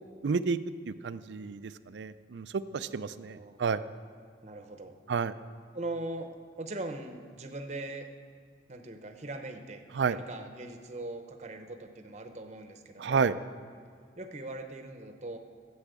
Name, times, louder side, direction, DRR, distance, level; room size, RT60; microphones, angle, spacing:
voice 1, 0.2-3.8 5.1-5.3 9.9-10.2 13.0-13.4, right 5 dB, 80° right, 13 dB, 0.4 m, -31 dB
voice 2, 3.1-3.6 4.4-4.9 5.7-6.3 6.6-8.1 8.7-13.3 14.2-15.4, right 2 dB, 40° right, 6 dB, 0.8 m, -41 dB
11.5 x 7.1 x 8.1 m, 2.1 s
head